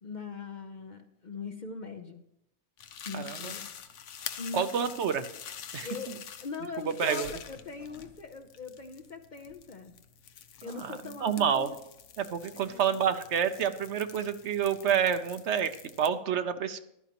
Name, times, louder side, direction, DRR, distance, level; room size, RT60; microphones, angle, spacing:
voice 1, 0.0-2.2 3.0-3.7 4.4-4.9 5.8-10.0 10.6-11.8 12.5-13.0, left 5 dB, 45° left, 6 dB, 0.7 m, -41 dB
sound 1, 2.8-16.1, left 8 dB, 70° left, 1.1 m, -46 dB
voice 2, 3.1-3.5 4.5-5.2 5.7-5.9 7.0-7.3 10.6-10.9 11.2-11.7 12.2-16.8, right 8 dB, 65° right, 10 dB, 1.0 m, -28 dB
15.0 x 12.0 x 3.0 m, 0.79 s
omnidirectional pair, 1.3 m